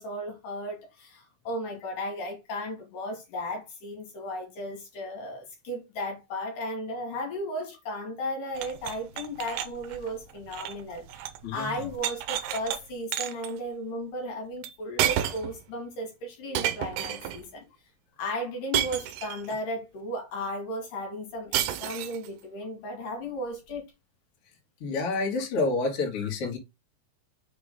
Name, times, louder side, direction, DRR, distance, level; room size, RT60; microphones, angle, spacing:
voice 1, 0.0-11.2 11.5-17.7 18.2-23.8 26.1-26.3, equal, 60° left, 3.1 m, -35 dB
sound 1, 8.5-11.5 11.7-12.8 13.1-13.5 14.6-14.7 15.0-15.6 16.5-17.4 18.7-19.6 21.5-22.3, right 12 dB, 90° right, 2.7 m, -31 dB
voice 2, 24.8-26.6, left 3 dB, 45° left, 2.2 m, -28 dB
6.3 x 3.7 x 4.8 m
omnidirectional pair, 4.7 m